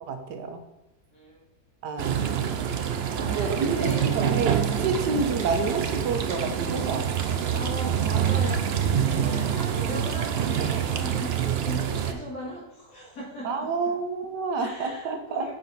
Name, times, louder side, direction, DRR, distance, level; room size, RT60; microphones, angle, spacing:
voice 1, 0.0-0.6 1.8-2.3 3.3-3.8 4.1-7.1 9.1-9.4 13.4-15.5, right 4 dB, 90° right, 6 dB, 1.6 m, -29 dB
voice 2, 1.1-1.4 3.1-4.3 7.5-13.7 14.6-15.5, equal, 65° left, -6 dB, 2.5 m, -38 dB
sound 1, 2.0-12.1, right 8 dB, 65° right, 0.6 m, -26 dB
Typing, 4.0-4.2 4.5-5.0 5.4-5.7 6.3-6.8 7.2-7.8 8.2-8.5 8.8-8.9 9.1-9.2, right 2 dB, 30° right, 1.2 m, -43 dB
9.0 x 5.6 x 4.1 m, 0.93 s
omnidirectional pair, 1.8 m